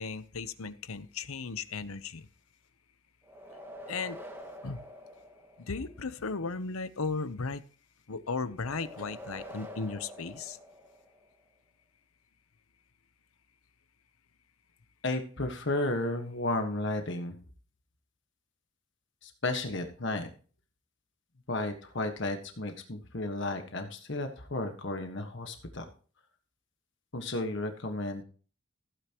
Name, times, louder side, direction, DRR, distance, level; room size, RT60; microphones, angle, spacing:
voice 1, 0.0-2.3 3.9-4.2 4.6-4.8 5.6-7.6 8.1-10.6, left 4 dB, 90° left, 14 dB, 0.9 m, -36 dB
sound 1, 3.2-6.0 8.6-11.3, equal, 10° right, 1.9 m, -46 dB
voice 2, 15.0-17.3 19.2-20.3 21.5-25.9 27.1-28.2, left 2 dB, 55° left, 6 dB, 1.4 m, -33 dB
15.5 x 9.3 x 3.0 m, 0.39 s
head